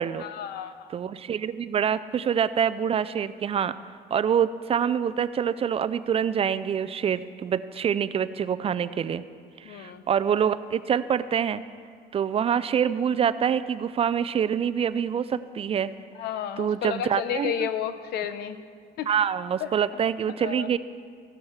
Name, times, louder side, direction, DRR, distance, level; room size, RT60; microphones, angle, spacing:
voice 1, 0.2-0.7 9.7-10.0 16.2-18.6 19.0-19.1 20.4-20.7, left 9 dB, 70° left, 12 dB, 0.7 m, -31 dB
voice 2, 0.9-3.7 4.1-9.2 9.6-11.6 12.1-15.9 16.6-17.7 19.0-20.8, right 8 dB, 35° right, 15 dB, 0.4 m, -26 dB
15.0 x 7.7 x 5.7 m, 2.1 s
cardioid pair, 110°, 17 cm